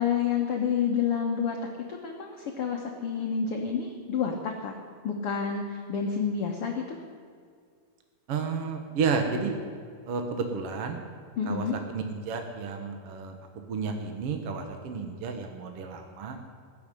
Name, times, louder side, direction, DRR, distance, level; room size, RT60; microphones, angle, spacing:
voice 1, 0.0-1.6 1.9-4.7 5.0-7.0 11.4-11.8, left 7 dB, 65° left, 1 dB, 1.4 m, -29 dB
voice 2, 8.3-9.6 10.1-11.0 11.4-11.7 11.9-13.3 13.7-16.4, right 5 dB, 60° right, 5 dB, 1.6 m, -31 dB
19.0 x 7.3 x 10.0 m, 2.1 s
omnidirectional pair, 4.1 m